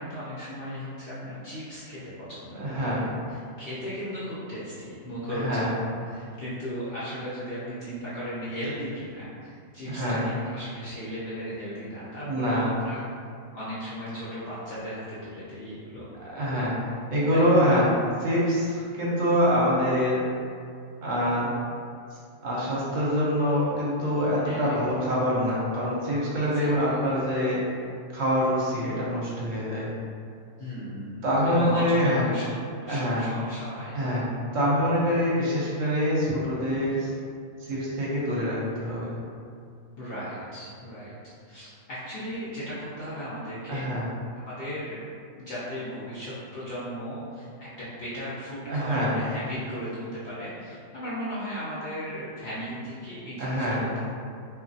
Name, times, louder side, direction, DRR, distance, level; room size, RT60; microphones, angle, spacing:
voice 1, 0.0-5.7 6.1-13.0 13.5-16.1 17.3-17.7 24.4-24.8 26.4-27.0 30.6-34.0 40.0-41.2 41.4-43.9 44.4-45.0 45.4-54.1, equal, 55° left, -10 dB, 0.7 m, -36 dB
voice 2, 2.6-3.1 5.3-5.7 9.9-10.2 12.3-12.7 16.2-16.8 17.1-20.2 21.0-21.5 22.4-27.7 28.1-29.9 31.2-32.2 32.9-33.2 33.9-34.2 34.5-37.1 37.6-39.1 43.7-44.0 48.7-49.1 53.4-53.8, equal, 70° right, -7 dB, 1.0 m, -25 dB
2.9 x 2.4 x 2.6 m, 2.3 s
omnidirectional pair, 1.4 m